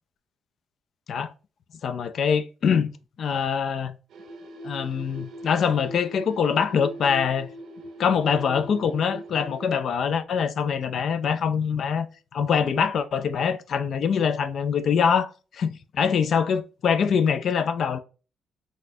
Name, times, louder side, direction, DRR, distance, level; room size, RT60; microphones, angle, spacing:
voice 1, 1.8-2.9 3.2-4.0 4.6-7.5 8.0-12.1 12.3-15.7 16.0-18.0, left 7 dB, 60° left, 0.3 m, -24 dB
sound 1, 4.1-9.7, right 1 dB, 70° right, 0.7 m, -41 dB
4.0 x 2.4 x 2.6 m
cardioid pair, 90°, 0 cm